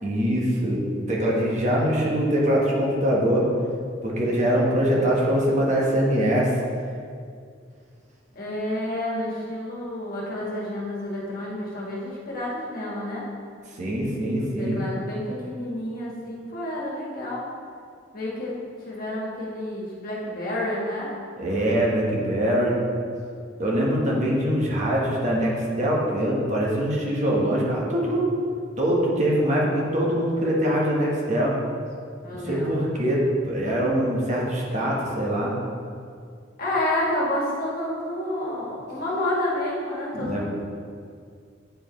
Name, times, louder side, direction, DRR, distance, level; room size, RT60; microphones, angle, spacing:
voice 1, 0.0-3.5 4.0-6.5 13.8-14.8 21.4-22.8 23.6-28.3 28.8-31.5 32.4-35.5 40.1-40.4, equal, 40° right, -4 dB, 1.2 m, -23 dB
voice 2, 8.3-13.2 14.4-17.5 18.1-18.6 18.8-21.1 32.2-33.0 36.6-40.4, left 1 dB, 50° left, -5 dB, 1.6 m, -29 dB
8.9 x 4.8 x 3.1 m, 2.2 s
head